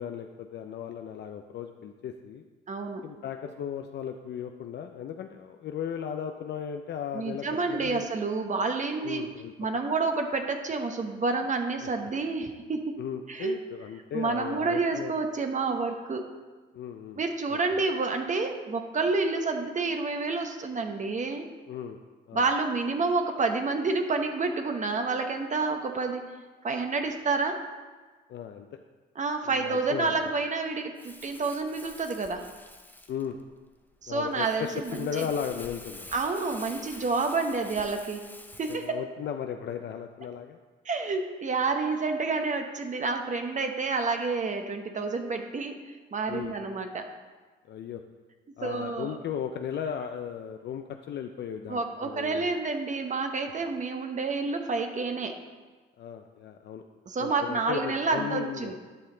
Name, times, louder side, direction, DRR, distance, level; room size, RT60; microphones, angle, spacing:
voice 1, 0.0-2.4 3.0-8.0 9.0-9.5 11.8-11.9 13.0-15.1 16.7-17.2 17.5-17.8 21.7-22.0 22.3-22.4 28.3-28.7 29.4-30.3 33.1-33.4 34.1-36.1 38.7-40.6 46.3-46.5 47.7-48.0 48.6-52.5 56.0-56.8 57.2-58.7, left 8 dB, 60° left, 5 dB, 0.5 m, -36 dB
voice 2, 2.7-3.0 7.1-9.2 9.6-12.8 13.3-13.6 14.1-16.3 17.2-21.5 22.3-26.3 26.6-27.6 29.2-32.4 34.0-35.3 36.1-38.2 38.6-38.9 40.8-47.1 48.6-49.2 51.7-55.3 57.1-58.7, right 3 dB, 40° right, 5 dB, 0.8 m, -29 dB
Crumpling crinkling, 31.0-38.9, left 1 dB, 10° left, 0.8 m, -47 dB
11.0 x 5.6 x 3.9 m, 1.3 s
cardioid pair, 90°, 20 cm